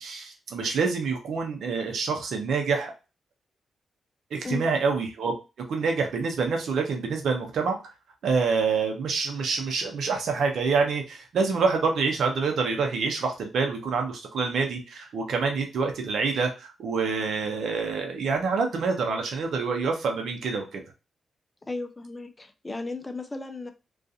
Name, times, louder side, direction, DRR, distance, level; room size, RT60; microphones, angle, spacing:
voice 1, 0.0-2.9 4.3-5.3 5.7-7.8 8.2-20.8, right 4 dB, 75° right, 0.7 m, -26 dB
voice 2, 21.6-23.7, left 3 dB, 25° left, 0.4 m, -35 dB
2.4 x 2.3 x 2.6 m
supercardioid pair, 55°, 0 cm